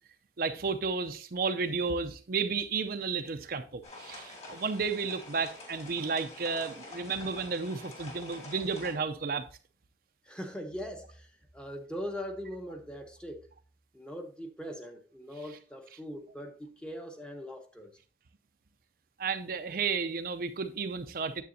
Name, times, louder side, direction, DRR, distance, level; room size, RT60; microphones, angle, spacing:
voice 1, 0.4-9.4 19.2-21.4, right 5 dB, 50° right, 0.5 m, -32 dB
sound 1, 3.8-8.9, left 2 dB, 35° left, 2.5 m, -47 dB
voice 2, 10.2-13.5 13.9-17.9, equal, 5° left, 0.9 m, -41 dB
9.4 x 7.4 x 2.7 m
head